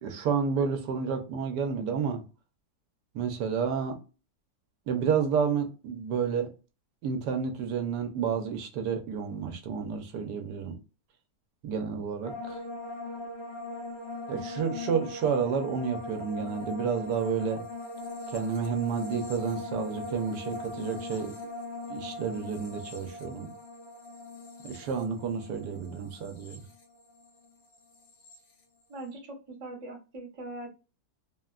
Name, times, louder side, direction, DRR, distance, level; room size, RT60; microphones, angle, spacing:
voice 1, 0.0-2.2 3.1-4.0 4.9-6.5 7.0-10.8 11.6-12.6 14.3-17.6 18.3-21.3 21.9-23.5 24.6-26.6, right 6 dB, 75° right, 1.2 m, -30 dB
sound 1, 12.2-27.5 27.7-28.4, left 2 dB, 55° left, 0.8 m, -40 dB
voice 2, 28.9-30.7, right 2 dB, 30° right, 0.6 m, -41 dB
3.4 x 2.2 x 2.3 m
omnidirectional pair, 1.8 m